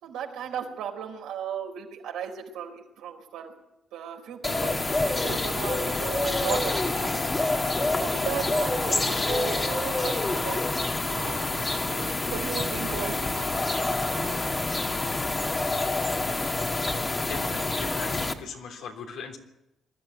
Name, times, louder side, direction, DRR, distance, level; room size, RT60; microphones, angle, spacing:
voice 1, 0.0-3.5 3.9-4.8 5.2-7.4 8.0-10.6 11.1-11.4 11.9-13.5, right 8 dB, 90° right, 2 dB, 4.2 m, -36 dB
sound 1, 4.4-18.3, left 2 dB, 25° left, 1.8 m, -27 dB
voice 2, 17.2-19.4, left 6 dB, 80° left, 3 dB, 3.4 m, -39 dB
21.0 x 13.0 x 9.7 m, 0.94 s
cardioid pair, 90°, 0 cm